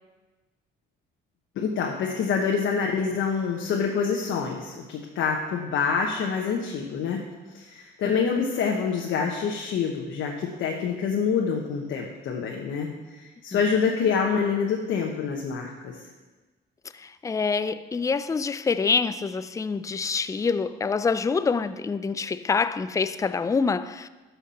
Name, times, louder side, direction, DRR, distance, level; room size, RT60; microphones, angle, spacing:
voice 1, 1.6-7.2 7.5-16.0, left 6 dB, 80° left, 1.1 m, -26 dB
voice 2, 17.0-24.1, left 5 dB, 15° left, 0.4 m, -26 dB
12.5 x 5.8 x 4.3 m
cardioid pair, 90°, 20 cm